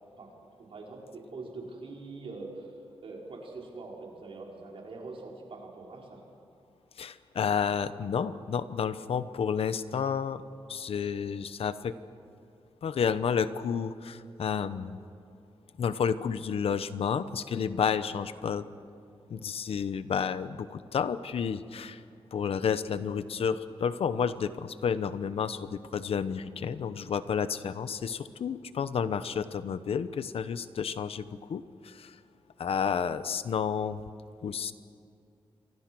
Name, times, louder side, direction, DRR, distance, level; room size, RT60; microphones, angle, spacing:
voice 1, 0.7-2.7 3.0-6.2, right 3 dB, 65° right, -1 dB, 5.2 m, -43 dB
voice 2, 7.0-10.4 10.7-11.9 12.8-15.0 15.8-18.6 19.3-22.0 22.3-32.1 32.6-34.0 34.4-34.7, left 7 dB, 75° left, 13 dB, 0.9 m, -31 dB
28.5 x 24.0 x 6.2 m, 2.5 s
wide cardioid pair, 170°, 10 cm